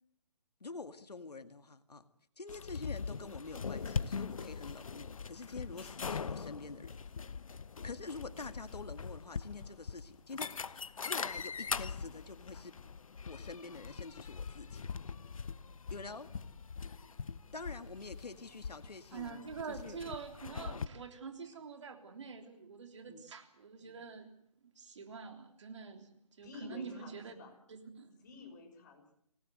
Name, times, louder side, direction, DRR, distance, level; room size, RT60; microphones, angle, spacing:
voice 1, 0.6-2.1 2.4-6.9 7.8-12.7 13.3-14.8 15.9-16.3 17.5-19.4 19.7-20.0 20.7-20.9 23.1-23.2, left 3 dB, 85° left, 10 dB, 2.2 m, -46 dB
sound 1, 2.5-20.9, left 5 dB, 60° left, 1.1 m, -42 dB
voice 2, 15.8-16.3 16.8-17.3 26.4-27.6 28.2-29.1, left 3 dB, 30° left, 3 dB, 5.8 m, -52 dB
voice 3, 19.1-24.3 24.6-27.3 27.7-28.2, right 5 dB, 50° right, 6 dB, 3.6 m, -46 dB
26.0 x 19.0 x 8.0 m, 0.68 s
hypercardioid pair, 165°, 20 cm